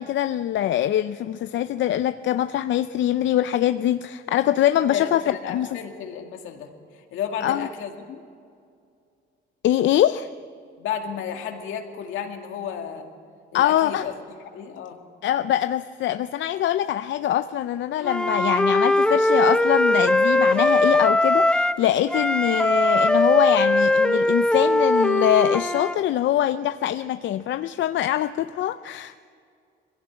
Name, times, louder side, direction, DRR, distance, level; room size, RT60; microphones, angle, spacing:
voice 1, 0.0-5.7 7.4-7.7 9.6-10.3 13.5-14.0 15.2-29.2, left 12 dB, 70° left, 12 dB, 0.5 m, -23 dB
voice 2, 4.9-6.7 7.1-8.2 10.8-13.1 13.5-14.1 14.5-15.0, left 8 dB, 90° left, 4 dB, 2.3 m, -32 dB
Wind instrument woodwind instrument, 18.0-21.8 22.1-26.0, left 1 dB, 5° left, 0.7 m, -20 dB
21.5 x 16.5 x 8.7 m, 2.4 s
cardioid pair, 90°, 20 cm